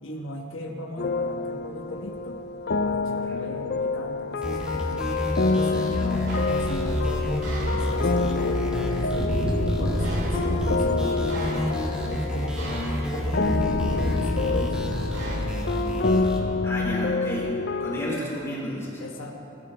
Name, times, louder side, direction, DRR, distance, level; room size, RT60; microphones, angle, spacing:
voice 1, 0.0-2.4 2.8-6.3 6.6-9.4 9.6-11.7 12.1-13.6 13.9-14.9 15.3-15.8 19.0-19.3, left 1 dB, 70° left, 2 dB, 1.2 m, -37 dB
sound 1, 1.0-18.2, left 3 dB, 50° left, 0.5 m, -28 dB
sound 2, 4.4-16.4, equal, 5° right, 1.8 m, -30 dB
voice 2, 5.7-6.0 16.6-17.5 17.8-19.0, equal, 15° left, -5 dB, 3.1 m, -32 dB
sound 3, 6.3-15.4, equal, 60° right, 2.5 m, -31 dB
20.5 x 13.5 x 3.4 m, 2.9 s
head